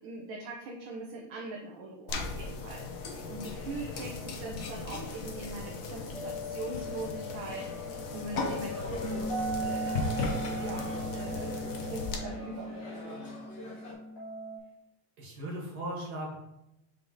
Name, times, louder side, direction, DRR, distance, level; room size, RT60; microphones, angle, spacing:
voice 1, 0.0-10.3 10.6-13.2, right 2 dB, 70° right, -1 dB, 1.5 m, -42 dB
sound 1, 2.1-12.2, left 3 dB, 70° left, 0.8 m, -38 dB
sound 2, 6.1-14.6, right 1 dB, 85° left, 3.4 m, -38 dB
sound 3, 8.7-13.9, left 3 dB, 40° left, 1.1 m, -39 dB
voice 2, 15.2-16.4, right 1 dB, 50° right, -3 dB, 2.1 m, -38 dB
7.4 x 3.6 x 3.9 m, 0.88 s
omnidirectional pair, 2.4 m